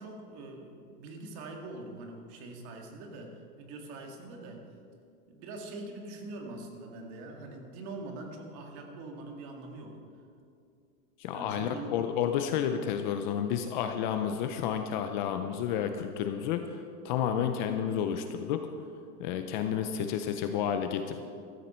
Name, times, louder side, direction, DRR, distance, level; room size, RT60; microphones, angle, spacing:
voice 1, 0.0-4.7 5.3-10.0 11.3-12.0, right 2 dB, 45° right, 2 dB, 2.1 m, -43 dB
voice 2, 11.2-16.8 17.0-18.7 19.2-21.2, left 8 dB, 35° left, 7 dB, 0.5 m, -31 dB
14.5 x 13.5 x 4.4 m, 2.4 s
supercardioid pair, 160°, 45 cm